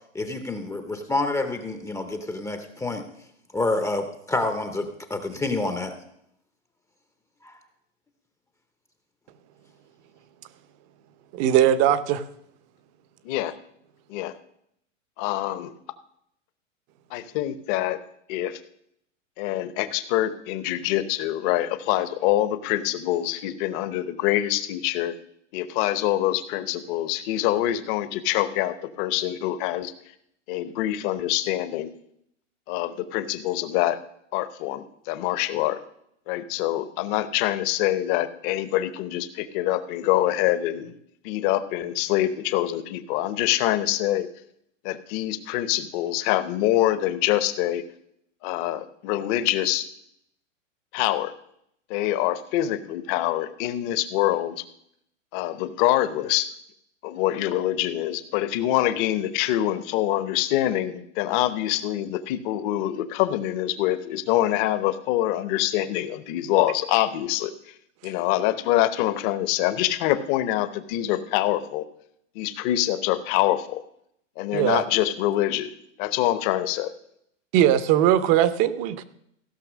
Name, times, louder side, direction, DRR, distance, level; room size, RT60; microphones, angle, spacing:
voice 1, 0.1-3.0 3.5-5.9 7.4-7.5, left 2 dB, 10° left, 7 dB, 0.7 m, -28 dB
voice 2, 11.3-12.2 74.5-74.8 77.5-79.0, right 11 dB, 40° right, 14 dB, 0.8 m, -20 dB
voice 3, 15.2-15.7 17.1-18.0 18.3-18.6 19.4-25.1 25.5-29.9 30.5-31.9 32.7-34.0 34.3-35.8 36.3-40.9 41.2-44.3 44.8-47.8 48.4-49.9 50.9-51.3 51.9-54.6 55.3-56.5 57.0-67.5 68.0-71.9 72.3-73.8 74.4-75.7 76.0-76.9, left 14 dB, 40° left, 13 dB, 1.0 m, -25 dB
15.5 x 5.9 x 6.2 m, 0.73 s
hypercardioid pair, 130°, 38 cm